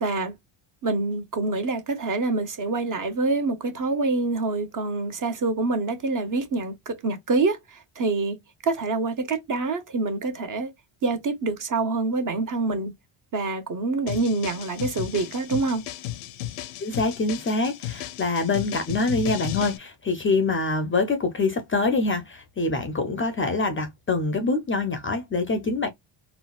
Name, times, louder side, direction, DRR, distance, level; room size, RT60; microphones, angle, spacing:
voice 1, 0.0-0.4 0.8-8.4 8.6-10.7 11.0-12.9 13.3-15.8, right 3 dB, 40° right, 0.9 m, -26 dB
sound 1, 14.1-19.8, left 13 dB, 85° left, 0.7 m, -34 dB
voice 2, 16.8-25.9, left 3 dB, 25° left, 0.5 m, -25 dB
3.9 x 2.1 x 2.3 m
cardioid pair, 115°, 50 cm